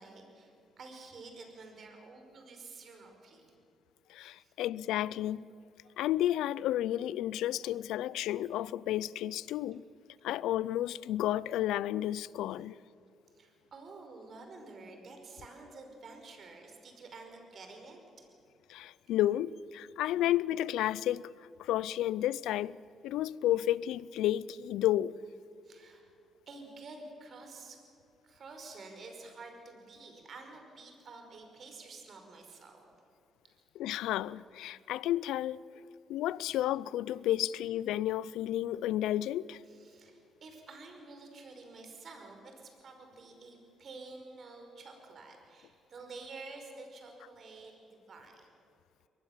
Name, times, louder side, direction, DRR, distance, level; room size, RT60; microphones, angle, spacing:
voice 1, 0.0-3.4 4.3-4.5 5.8-5.9 13.3-18.3 20.1-20.3 25.6-26.1 26.5-27.8 28.2-32.9 34.6-34.8 39.6-48.5, right 3 dB, 55° right, 5.3 m, -50 dB
voice 2, 4.1-5.5 6.0-9.8 10.2-12.8 18.7-21.2 21.6-22.8 23.0-25.1 33.8-35.6 36.1-39.6, left 13 dB, 90° left, 0.5 m, -31 dB
23.5 x 19.5 x 7.4 m
cardioid pair, 90°, 0 cm